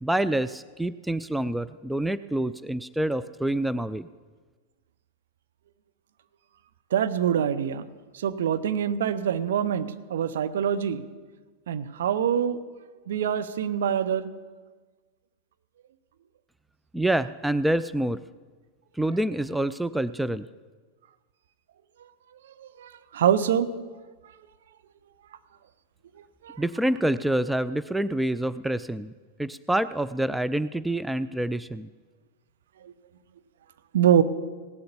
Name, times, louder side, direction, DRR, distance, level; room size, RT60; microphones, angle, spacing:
voice 1, 0.0-4.1 16.9-18.2 19.0-20.5 26.6-29.1 29.4-31.9, right 1 dB, 5° right, 14 dB, 0.3 m, -27 dB
voice 2, 6.9-7.9 8.1-11.0 11.7-12.6 13.1-14.3 22.6-23.7 26.4-26.6 32.8-32.9 33.9-34.2, right 9 dB, 60° right, 11 dB, 0.7 m, -25 dB
17.0 x 7.7 x 6.9 m, 1.4 s
figure-of-eight pair, 90°, 0 cm